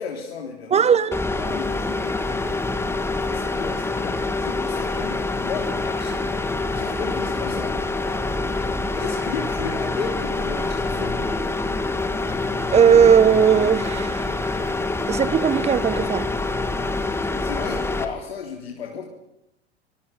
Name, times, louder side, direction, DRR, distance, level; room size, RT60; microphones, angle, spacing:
voice 1, 0.0-1.0 1.3-2.2 3.3-6.2 6.7-8.2 9.0-11.2 17.2-19.1, left 6 dB, 70° left, 3.6 m, -34 dB
voice 2, 0.7-1.2 12.7-14.3 15.1-16.3, right 7 dB, 20° right, 1.4 m, -17 dB
sound 1, 1.1-18.1, left 3 dB, 10° left, 2.3 m, -26 dB
25.5 x 21.5 x 6.9 m
figure-of-eight pair, 85°, 32 cm